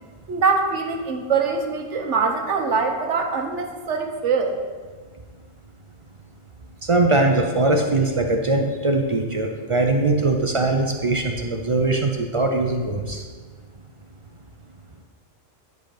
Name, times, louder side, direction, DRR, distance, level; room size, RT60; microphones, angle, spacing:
voice 1, 0.3-4.5, right 4 dB, 70° right, 4 dB, 1.1 m, -23 dB
voice 2, 6.9-13.2, right 2 dB, 50° right, 3 dB, 0.4 m, -21 dB
10.5 x 3.9 x 4.9 m, 1.5 s
omnidirectional pair, 1.3 m